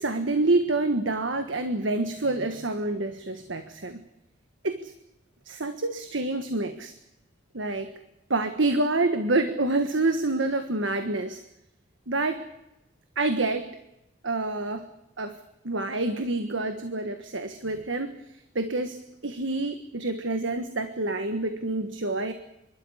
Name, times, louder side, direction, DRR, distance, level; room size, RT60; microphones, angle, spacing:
voice 1, 0.0-4.0 4.6-4.9 5.4-6.9 7.5-7.9 8.3-11.4 12.1-12.4 13.1-13.7 14.2-14.9 15.2-15.4 15.6-18.2 18.5-22.3, right 2 dB, 70° right, 8 dB, 1.5 m, -27 dB
27.5 x 13.0 x 9.9 m, 0.90 s
head